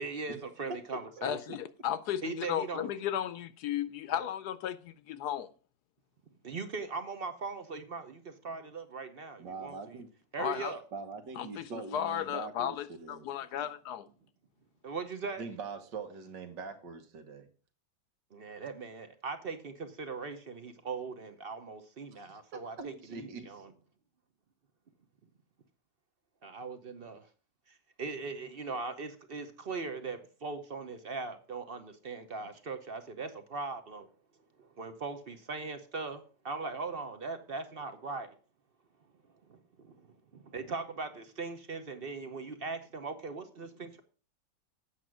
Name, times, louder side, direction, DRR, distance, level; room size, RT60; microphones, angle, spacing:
voice 1, 0.0-1.4 2.2-2.9 4.1-4.3 6.4-10.0 10.3-10.8 14.8-15.4 18.3-23.7 26.4-27.3 27.7-34.1 34.6-38.3 39.5-39.6 39.8-40.1 40.3-44.0, right 4 dB, 45° right, 0.8 m, -40 dB
voice 2, 1.2-5.5 10.4-10.7 11.4-14.1, left 10 dB, 70° left, 1.1 m, -35 dB
voice 3, 9.4-10.1 10.9-13.3 13.6-13.7 15.4-17.5 22.1-22.2 22.5-23.6, right 4 dB, 75° right, 1.9 m, -43 dB
8.6 x 6.1 x 6.1 m
omnidirectional pair, 1.9 m